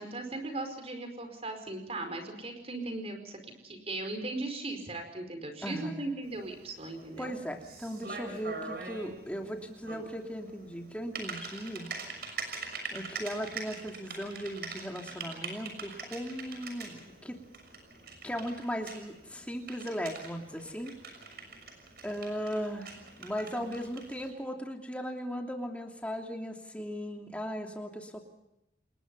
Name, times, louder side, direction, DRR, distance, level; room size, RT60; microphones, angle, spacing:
voice 1, 0.0-7.4, right 2 dB, 35° right, 6 dB, 4.9 m, -38 dB
voice 2, 5.6-6.1 7.2-11.9 12.9-17.4 18.2-20.9 22.0-28.3, equal, 10° left, 2 dB, 3.0 m, -37 dB
Typing, 6.2-24.3, right 4 dB, 60° right, 6.4 m, -44 dB
28.5 x 21.0 x 5.6 m, 0.87 s
head